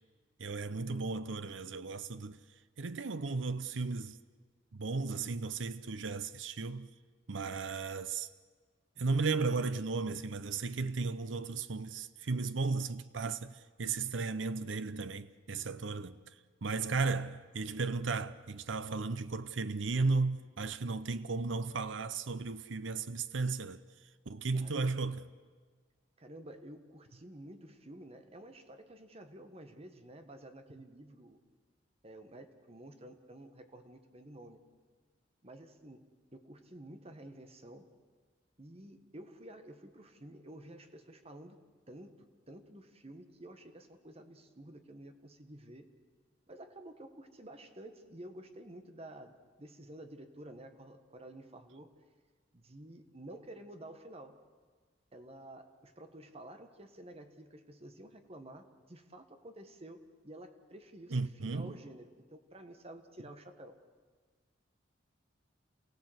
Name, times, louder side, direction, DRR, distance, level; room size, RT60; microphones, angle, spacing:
voice 1, 0.4-2.4 2.8-4.2 4.7-6.9 7.3-8.3 9.0-16.3 16.6-23.8 24.3-25.3 61.1-61.8, right 4 dB, 85° right, 0.7 m, -35 dB
voice 2, 24.5-24.9 26.2-31.4 32.0-34.6 35.4-36.0 36.3-37.9 38.6-41.6 41.9-45.9 46.5-51.9 52.5-54.4 55.1-63.8, right 1 dB, 35° right, 1.5 m, -51 dB
28.0 x 17.0 x 8.0 m
head